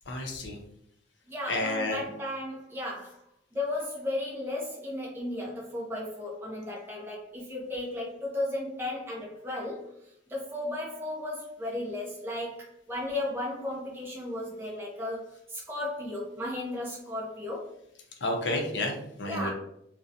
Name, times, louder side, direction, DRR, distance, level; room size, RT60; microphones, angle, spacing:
voice 1, 0.1-0.6 1.5-2.0 18.2-19.5, left 1 dB, 70° left, 2 dB, 0.5 m, -30 dB
voice 2, 1.3-3.2 3.5-17.7 19.3-19.5, left 1 dB, 10° right, -5 dB, 0.5 m, -35 dB
2.4 x 2.1 x 2.6 m, 0.76 s
head